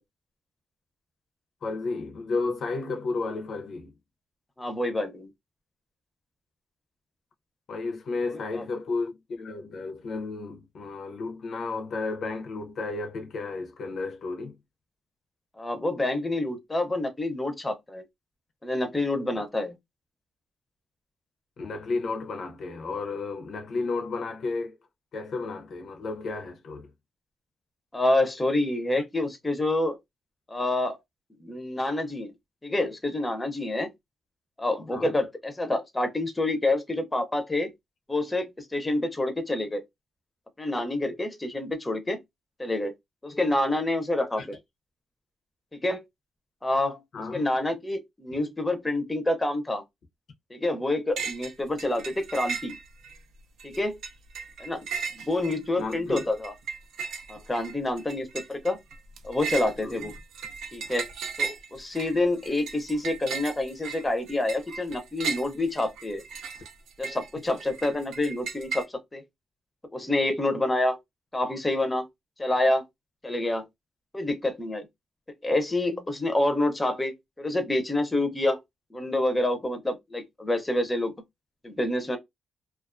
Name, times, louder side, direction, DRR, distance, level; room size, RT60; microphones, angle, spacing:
voice 1, 1.6-3.9 7.7-14.6 19.3-19.4 21.6-24.8 25.1-26.9 29.0-29.1 34.9-35.1 44.4-44.5 47.1-47.5 55.8-56.3 59.8-60.1, left 3 dB, 60° left, 0.5 m, -33 dB
voice 2, 4.6-5.3 8.5-8.6 15.6-18.0 18.6-19.7 27.9-30.0 30.5-31.0 31.4-32.3 32.6-33.9 34.6-37.7 38.1-39.8 40.6-42.2 42.6-42.9 43.2-44.4 45.8-46.0 46.6-47.0 47.3-49.8 50.5-52.7 53.6-54.0 54.6-54.8 55.2-56.5 57.3-58.8 59.2-60.1 60.7-61.1 61.4-66.2 67.0-69.2 69.9-71.0 71.3-72.0 72.4-72.8 73.2-73.6 74.1-74.9 75.4-78.6 78.9-81.1 81.6-82.2, left 2 dB, 15° left, 0.5 m, -27 dB
sound 1, 51.2-51.5 51.8-53.2 53.6-68.8, right 6 dB, 90° right, 0.4 m, -36 dB
2.3 x 2.2 x 2.4 m
cardioid pair, 110°, 0 cm